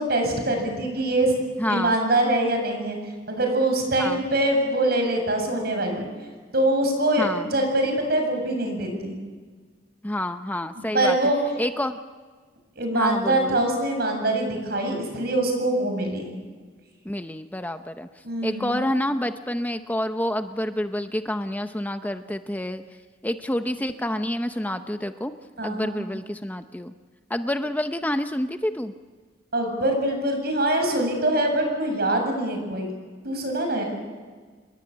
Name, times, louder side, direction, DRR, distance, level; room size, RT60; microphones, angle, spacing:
voice 1, 0.0-1.3 1.7-3.0 3.3-6.1 6.5-9.2 10.8-11.4 12.8-16.3 18.2-18.7 25.6-26.0 29.5-32.9 33.2-33.8, right 1 dB, 60° right, 4 dB, 7.6 m, -24 dB
voice 2, 1.6-2.0 4.0-4.2 7.2-7.5 10.0-11.2 11.6-12.0 12.9-13.6 17.0-18.1 18.4-22.8 23.2-25.3 25.6-26.9 27.3-28.9, left 1 dB, 10° left, 8 dB, 0.7 m, -28 dB
28.5 x 21.0 x 8.6 m, 1.5 s
head